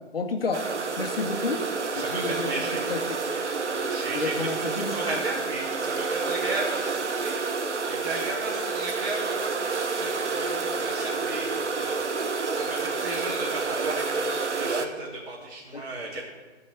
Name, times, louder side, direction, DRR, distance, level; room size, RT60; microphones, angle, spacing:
voice 1, 0.1-0.6 1.0-1.6 1.9-3.2 4.1-5.0 15.7-15.9, left 4 dB, 55° left, 4 dB, 1.7 m, -30 dB
sound 1, 0.5-14.8, right 4 dB, 80° right, 1.1 m, -29 dB
voice 2, 1.9-3.0 3.8-12.0 12.5-16.2, right 2 dB, 45° right, -7 dB, 2.8 m, -35 dB
13.5 x 5.5 x 7.9 m, 1.3 s
figure-of-eight pair, 140°, 35 cm